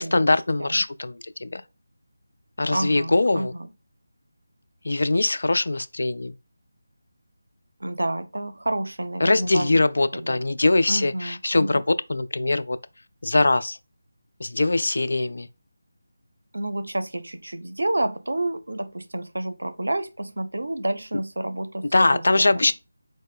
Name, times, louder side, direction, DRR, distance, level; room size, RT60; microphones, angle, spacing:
voice 1, 0.0-1.6 2.6-3.5 4.8-6.3 9.2-12.8 13.2-13.8 14.4-15.5 21.8-22.7, left 2 dB, 70° left, 0.3 m, -22 dB
voice 2, 2.7-3.7 7.8-9.7 10.1-10.4 10.9-11.8 16.5-22.7, right 1 dB, 80° right, 0.5 m, -29 dB
4.2 x 2.1 x 3.4 m
figure-of-eight pair, 165°, 0 cm